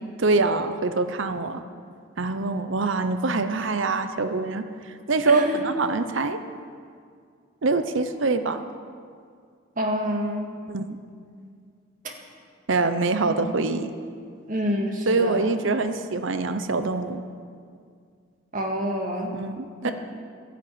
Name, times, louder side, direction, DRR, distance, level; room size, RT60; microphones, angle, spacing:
voice 1, 0.2-1.6 2.2-4.6 5.1-6.4 7.6-8.6 10.7-11.0 12.7-13.9 15.1-17.2 19.3-19.9, right 3 dB, 65° right, 9 dB, 0.8 m, -24 dB
voice 2, 5.2-5.6 9.8-10.6 13.2-13.6 14.5-15.5 18.5-19.3 19.8-19.9, equal, 40° right, 1 dB, 2.0 m, -27 dB
12.5 x 11.0 x 8.7 m, 2.2 s
head